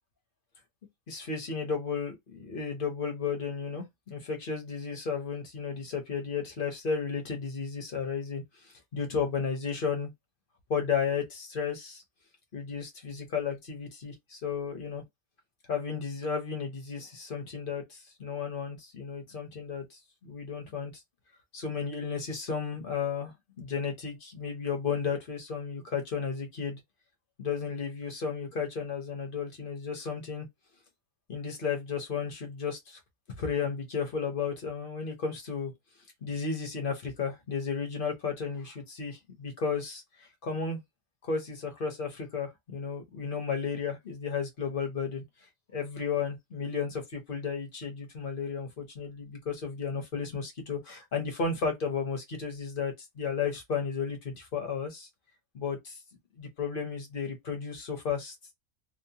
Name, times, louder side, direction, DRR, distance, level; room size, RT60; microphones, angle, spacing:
voice 1, 1.1-10.1 10.7-12.0 12.5-15.0 15.7-21.0 21.5-26.8 27.4-30.5 31.3-33.0 33.4-35.7 36.2-40.8 41.2-45.2 45.7-55.1 55.5-56.0 56.3-58.5, left 6 dB, 45° left, 0.8 m, -33 dB
2.8 x 2.1 x 2.7 m
omnidirectional pair, 1.4 m